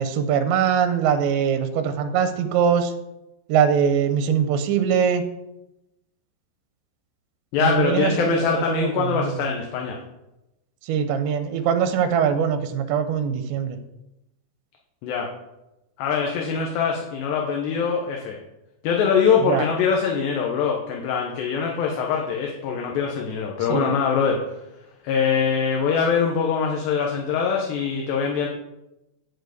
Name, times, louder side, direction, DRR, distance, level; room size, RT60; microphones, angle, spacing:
voice 1, 0.0-2.9 3.5-5.3 7.6-9.3 10.9-13.8 19.5-19.6 23.7-23.9, right 7 dB, 80° right, 8 dB, 3.0 m, -22 dB
voice 2, 7.5-10.0 15.0-15.3 16.0-18.4 18.8-24.6 25.0-28.5, left 6 dB, 75° left, 0 dB, 3.1 m, -23 dB
11.0 x 4.6 x 8.0 m, 0.94 s
omnidirectional pair, 5.2 m